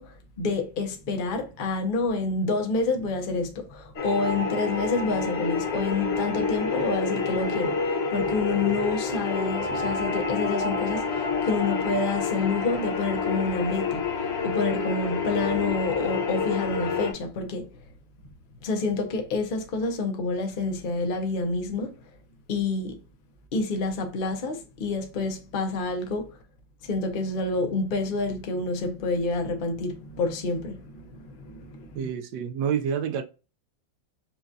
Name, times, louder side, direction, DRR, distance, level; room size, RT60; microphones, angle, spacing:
voice 1, 0.0-17.7 18.6-22.0 22.5-23.0 23.5-26.3 26.8-32.1, left 3 dB, 85° left, 0.4 m, -28 dB
sound 1, 4.0-17.1, left 4 dB, 50° left, 0.8 m, -28 dB
voice 2, 31.9-33.2, right 7 dB, 70° right, 1.1 m, -28 dB
5.7 x 2.5 x 2.6 m
omnidirectional pair, 2.1 m